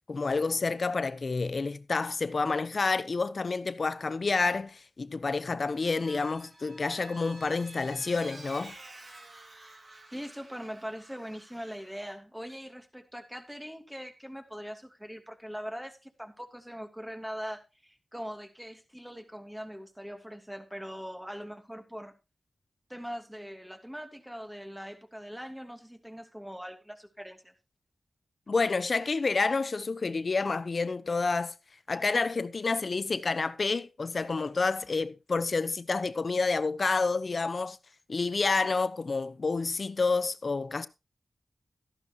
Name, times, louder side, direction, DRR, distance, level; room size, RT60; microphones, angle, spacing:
voice 1, 0.1-8.7 28.5-31.5 31.9-37.8 38.1-40.9, left 4 dB, 60° left, 0.9 m, -29 dB
Vehicle, 5.7-12.0, right 2 dB, 65° right, 5.3 m, -50 dB
voice 2, 10.1-22.1 22.9-27.5, equal, 5° right, 2.7 m, -41 dB
13.5 x 11.5 x 3.0 m
cardioid pair, 40°, 0 cm